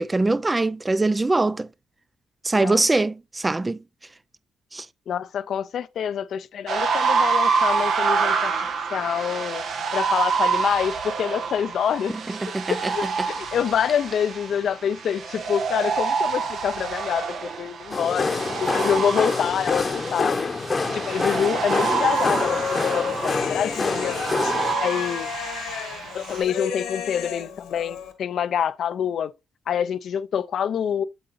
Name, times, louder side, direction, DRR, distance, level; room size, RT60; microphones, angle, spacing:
voice 1, 0.0-1.7 2.4-3.8 4.7-4.9 12.3-12.9 13.2-13.3, right 2 dB, 20° right, 0.4 m, -23 dB
voice 2, 5.1-8.5 8.9-9.6 9.9-12.2 12.7-20.5 20.9-24.2 24.7-25.3 26.1-29.3 29.7-31.0, left 8 dB, 65° left, 0.5 m, -26 dB
sound 1, 6.7-26.4, right 5 dB, 70° right, 1.1 m, -27 dB
sound 2, 17.9-24.7, left 4 dB, 35° left, 0.9 m, -26 dB
Human voice, 21.7-28.1, left 8 dB, 90° left, 1.5 m, -34 dB
7.9 x 7.6 x 2.5 m
supercardioid pair, 55°, 0 cm